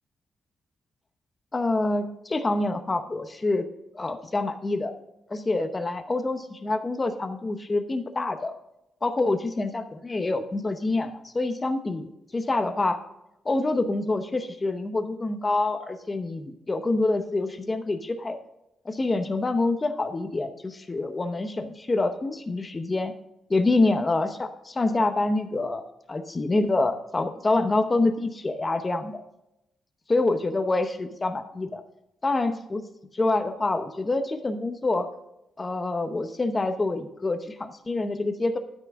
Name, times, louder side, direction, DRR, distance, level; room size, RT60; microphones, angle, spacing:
voice 1, 1.5-3.7 3.9-4.9 5.3-8.5 9.0-13.0 13.4-18.4 18.8-23.1 23.5-25.8 26.1-29.2 30.1-31.8 32.2-32.9 33.1-35.1 35.6-38.6, left 2 dB, 20° left, 8 dB, 0.8 m, -26 dB
12.5 x 6.0 x 3.6 m, 0.85 s
wide cardioid pair, 170°, 0 cm